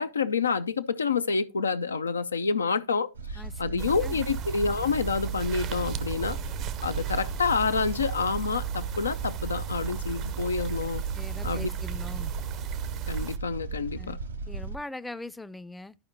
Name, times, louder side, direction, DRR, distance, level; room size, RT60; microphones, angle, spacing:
voice 1, 0.0-6.4 6.8-11.0 11.4-11.7 13.1-14.2, left 5 dB, 85° left, 0.5 m, -28 dB
sound 1, 3.1-14.8, right 3 dB, 85° right, 0.7 m, -38 dB
voice 2, 3.4-4.2 11.1-12.3 14.0-14.2 14.5-16.0, left 2 dB, 10° left, 0.5 m, -41 dB
sound 2, 3.8-13.4, right 9 dB, 45° right, 0.6 m, -34 dB
12.5 x 4.9 x 2.7 m
hypercardioid pair, 90°, 0 cm